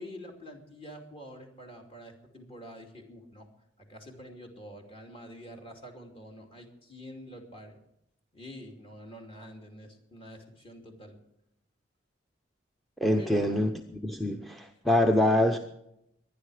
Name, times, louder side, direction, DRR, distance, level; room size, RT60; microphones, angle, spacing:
voice 1, 0.0-3.5 3.8-7.8 8.3-11.2 13.2-13.6, equal, 30° left, 2 dB, 2.8 m, -46 dB
voice 2, 13.0-15.6, left 1 dB, ahead, 3 dB, 0.7 m, -25 dB
23.5 x 10.0 x 4.9 m, 0.81 s
head